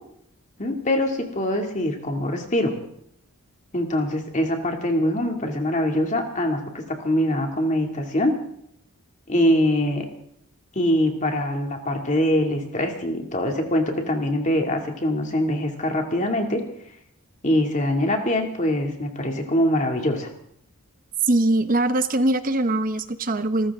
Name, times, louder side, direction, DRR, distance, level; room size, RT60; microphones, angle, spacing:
voice 1, 0.6-2.7 3.7-8.4 9.3-10.1 10.8-16.6 17.4-20.3, left 1 dB, 35° left, 3 dB, 2.4 m, -23 dB
voice 2, 21.2-23.7, right 2 dB, 40° right, 11 dB, 0.9 m, -22 dB
27.5 x 14.0 x 3.7 m, 0.72 s
head